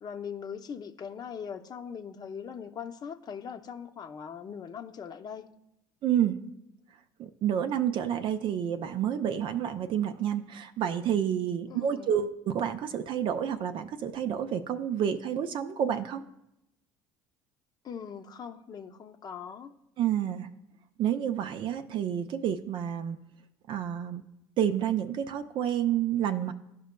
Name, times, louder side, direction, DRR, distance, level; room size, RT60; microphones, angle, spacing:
voice 1, 0.0-5.4 11.7-12.1 17.8-19.7, left 7 dB, 40° left, 6 dB, 0.6 m, -40 dB
voice 2, 6.0-6.4 7.2-16.2 20.0-20.5 21.0-23.2 23.7-24.2 24.6-26.5, right 9 dB, 55° right, 7 dB, 0.5 m, -29 dB
12.5 x 5.1 x 2.2 m, 0.86 s
hypercardioid pair, 75°, 10 cm